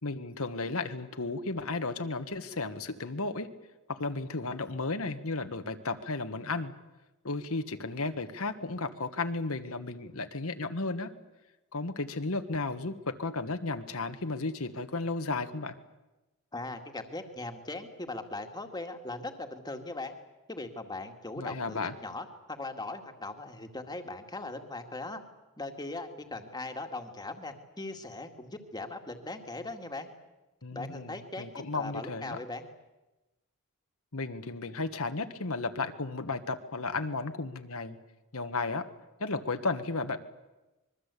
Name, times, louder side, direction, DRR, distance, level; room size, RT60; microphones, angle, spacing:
voice 1, 0.0-3.5 3.9-6.7 7.2-11.1 11.7-15.7 21.4-21.9 30.6-32.4 34.1-38.0 38.3-38.9 39.2-40.2, left 3 dB, 70° left, 8 dB, 1.6 m, -34 dB
voice 2, 16.5-20.1 20.5-25.2 25.6-30.1 30.7-31.5 31.7-32.7, left 2 dB, 20° left, 5 dB, 2.1 m, -39 dB
25.5 x 22.0 x 8.4 m, 1.0 s
head